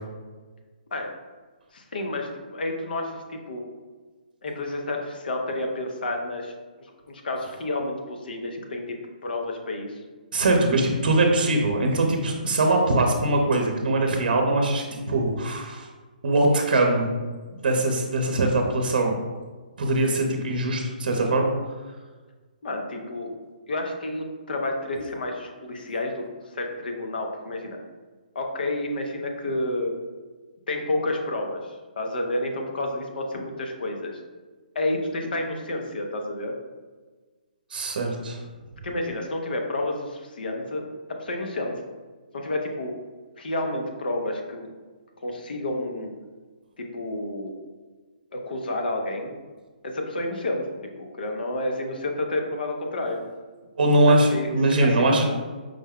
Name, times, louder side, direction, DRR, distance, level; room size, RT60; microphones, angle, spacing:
voice 1, 1.7-3.6 4.4-6.5 6.8-10.0 22.6-23.3 23.7-27.8 28.3-29.9 30.7-34.1 34.7-36.5 38.8-40.8 41.2-41.8 42.3-42.9 43.4-44.7 45.2-46.1 46.8-47.5 48.3-49.3 49.8-50.6 51.0-53.2 54.0-55.1, left 2 dB, 75° left, 2 dB, 0.7 m, -30 dB
voice 2, 10.3-15.9 16.2-17.1 17.6-19.1 19.8-21.5 37.7-38.4 53.8-55.2, right 2 dB, 70° right, 2 dB, 0.6 m, -22 dB
4.9 x 2.2 x 3.6 m, 1.4 s
hypercardioid pair, 160°, 5 cm